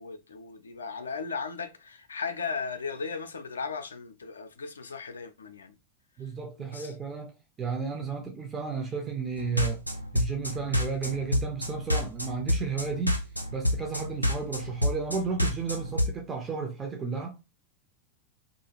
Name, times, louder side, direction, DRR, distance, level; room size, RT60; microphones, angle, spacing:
voice 1, 0.0-5.8 6.7-6.9, left 5 dB, 70° left, 0.3 m, -36 dB
voice 2, 6.2-7.3 7.6-9.8 10.1-13.2 13.5-17.4, right 5 dB, 20° right, 0.5 m, -33 dB
sound 1, 9.4-16.1, left 1 dB, 90° right, 0.4 m, -28 dB
2.4 x 2.2 x 2.9 m
figure-of-eight pair, 90°, 0 cm